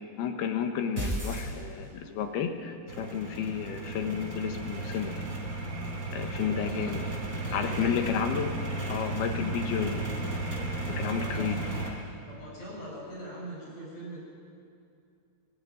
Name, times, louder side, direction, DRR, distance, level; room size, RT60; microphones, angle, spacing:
voice 1, 0.2-5.3 6.1-7.0 7.5-8.6 8.9-10.1 10.8-11.6, left 7 dB, 80° left, 5 dB, 3.2 m, -31 dB
sound 1, 1.0-2.2, right 1 dB, 10° right, 4.3 m, -33 dB
sound 2, 2.9-11.9, right 2 dB, 25° right, 3.6 m, -34 dB
voice 2, 6.6-8.0 11.2-11.5 12.3-14.2, right 1 dB, 40° left, -5 dB, 7.6 m, -42 dB
19.5 x 16.0 x 9.3 m, 2.4 s
omnidirectional pair, 4.6 m